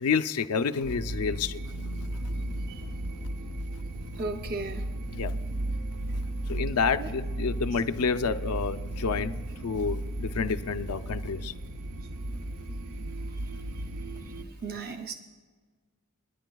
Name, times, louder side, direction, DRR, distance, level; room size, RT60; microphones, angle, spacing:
voice 1, 0.0-1.6 5.1-5.4 6.5-11.5, left 5 dB, 85° left, 11 dB, 0.5 m, -29 dB
sound 1, 0.8-14.5, right 1 dB, 80° right, 0.8 m, -35 dB
voice 2, 4.2-4.8 14.6-15.1, right 3 dB, 40° right, 5 dB, 0.5 m, -34 dB
29.5 x 10.5 x 2.3 m, 1.5 s
head